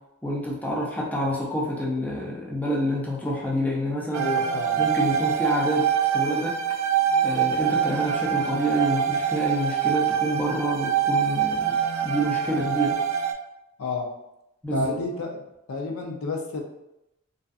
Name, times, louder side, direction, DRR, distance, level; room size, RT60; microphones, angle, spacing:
voice 1, 0.2-4.3 4.8-5.9 6.1-6.6 7.2-11.7 12.0-13.0 14.6-15.0, equal, 5° left, -4 dB, 0.4 m, -27 dB
sound 1, 4.1-13.3, right 8 dB, 75° right, 0.3 m, -25 dB
voice 2, 4.2-4.8 13.8-14.1 14.7-15.4 15.7-16.6, left 2 dB, 70° left, 2 dB, 0.4 m, -30 dB
2.5 x 2.3 x 2.3 m, 0.87 s
head